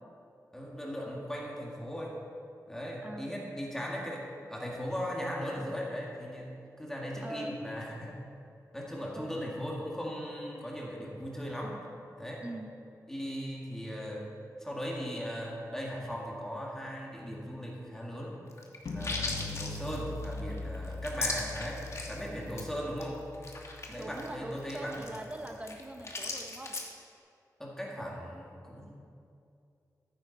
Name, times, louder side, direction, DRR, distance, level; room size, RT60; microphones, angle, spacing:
voice 1, 0.5-2.2 2.7-8.1 8.7-11.8 12.2-12.4 13.1-14.2 14.6-18.4 18.9-23.2 23.9-25.0 27.6-29.0, equal, 5° left, -3 dB, 2.0 m, -38 dB
voice 2, 7.2-7.5 9.1-9.6 12.4-12.7 24.0-26.8, right 1 dB, 20° right, 4 dB, 0.9 m, -42 dB
sound 1, 18.5-22.2 22.5-22.7 23.0-23.1 23.3-26.9, left 3 dB, 45° left, 1.3 m, -38 dB
sound 2, 18.9-24.9, left 3 dB, 75° left, 1.1 m, -41 dB
14.0 x 9.6 x 4.2 m, 2.5 s
wide cardioid pair, 160°, 7 cm